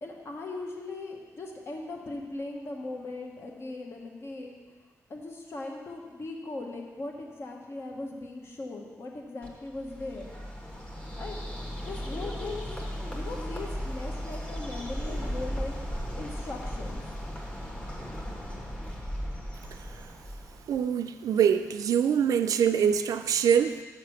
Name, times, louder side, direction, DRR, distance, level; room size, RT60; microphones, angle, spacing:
voice 1, 0.0-4.8 5.1-10.3 11.2-11.4 11.8-12.7 13.1-15.7 16.1-17.0, left 2 dB, 45° left, 1 dB, 1.2 m, -39 dB
Bird, 9.4-20.8, equal, 20° left, 1.3 m, -36 dB
voice 2, 20.7-23.8, right 8 dB, 85° right, 9 dB, 0.4 m, -24 dB
6.5 x 5.8 x 6.4 m, 1.4 s
wide cardioid pair, 135°, 6 cm